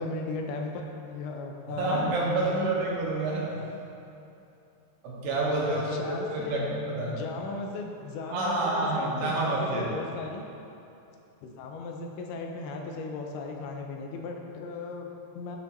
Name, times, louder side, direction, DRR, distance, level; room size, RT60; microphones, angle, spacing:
voice 1, 0.0-2.8 5.8-6.8 7.1-10.5 11.4-15.6, left 3 dB, 80° left, 2 dB, 2.4 m, -36 dB
voice 2, 1.8-3.5 5.0-7.1 8.3-9.9, right 2 dB, 80° right, -5 dB, 3.2 m, -28 dB
11.0 x 5.7 x 3.0 m, 2.8 s
omnidirectional pair, 4.7 m